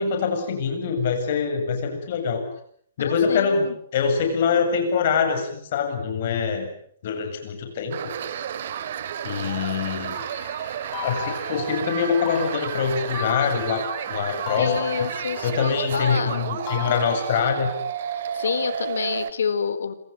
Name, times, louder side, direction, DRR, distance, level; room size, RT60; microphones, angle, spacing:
voice 1, 0.0-2.4 3.0-3.7 3.9-6.7 7.0-8.0 9.2-10.2 11.0-14.8 15.4-17.7, left 6 dB, 40° left, 6 dB, 7.8 m, -24 dB
voice 2, 3.0-3.8 14.6-16.5 18.3-19.9, left 6 dB, 90° left, 13 dB, 3.8 m, -28 dB
sound 1, 7.9-19.3, right 9 dB, 45° right, 2.4 m, -31 dB
sound 2, 10.1-16.4 16.7-17.9, left 8 dB, 20° left, 6.2 m, -37 dB
28.5 x 27.0 x 7.0 m, 0.63 s
hypercardioid pair, 175°, 0 cm